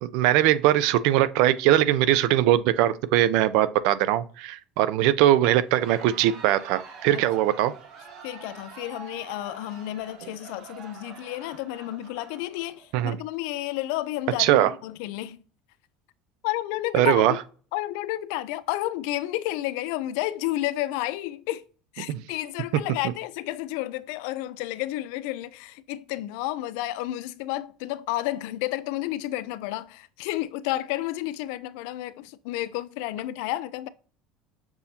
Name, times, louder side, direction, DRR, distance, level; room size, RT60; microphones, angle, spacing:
voice 1, 0.0-7.7 12.9-13.2 14.4-14.7 16.9-17.3 22.1-22.2, right 13 dB, 65° right, 0.4 m, -21 dB
Crowd, 5.7-13.2, right 5 dB, 50° right, 0.9 m, -46 dB
voice 2, 8.2-15.4 16.4-17.4 17.7-21.6 21.9-33.9, left 15 dB, 75° left, 0.3 m, -31 dB
6.8 x 2.8 x 2.7 m
cardioid pair, 175°, 0 cm